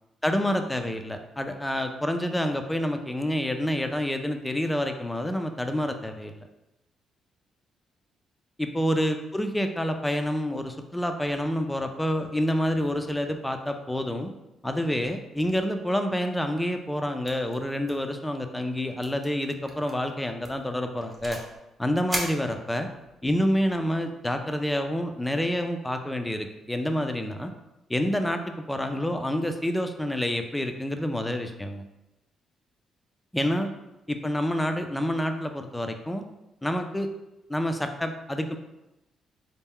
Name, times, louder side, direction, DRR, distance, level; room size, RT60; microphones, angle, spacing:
voice 1, 0.2-6.5 8.6-14.3 14.6-21.4 21.8-22.9 23.2-27.5 27.9-28.4 28.7-31.8 33.3-33.7 34.1-36.2 36.6-37.1 37.5-38.6, equal, 10° left, 6 dB, 0.4 m, -28 dB
sound 1, 17.3-17.6 17.8-18.1 18.4-18.5 19.0-19.3 19.7-19.9 20.4-21.6 22.1-23.1, right 1 dB, 15° right, 0.8 m, -36 dB
4.2 x 2.1 x 3.6 m, 0.94 s
cardioid pair, 90°, 0 cm